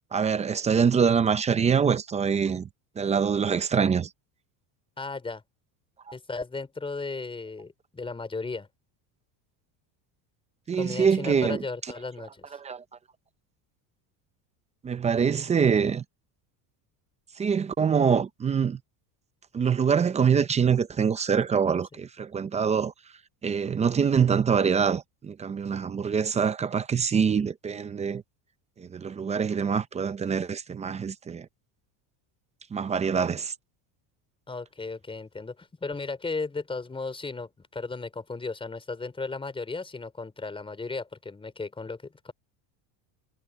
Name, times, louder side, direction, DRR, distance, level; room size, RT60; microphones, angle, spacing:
voice 1, 0.1-2.7 3.0-4.1 10.7-11.6 12.6-12.8 14.8-16.0 17.4-18.8 19.5-22.9 23.4-28.2 28.8-31.5 32.7-33.5, right 6 dB, 15° right, 0.5 m, -24 dB
voice 2, 5.0-5.4 6.1-8.7 10.8-12.6 34.5-42.3, left 3 dB, 10° left, 4.8 m, -35 dB
cardioid pair, 150°, 44 cm